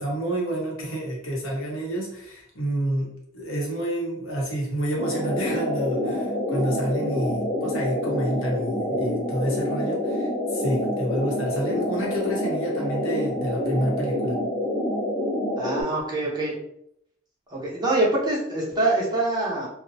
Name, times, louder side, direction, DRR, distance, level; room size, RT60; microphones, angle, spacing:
voice 1, 0.0-14.4, right 1 dB, 80° left, -2 dB, 0.9 m, -29 dB
sound 1, 5.0-15.8, left 1 dB, 35° left, 1.0 m, -27 dB
voice 2, 15.6-16.5 17.5-19.7, right 2 dB, 20° right, -5 dB, 0.8 m, -24 dB
2.7 x 2.0 x 2.6 m, 0.73 s
head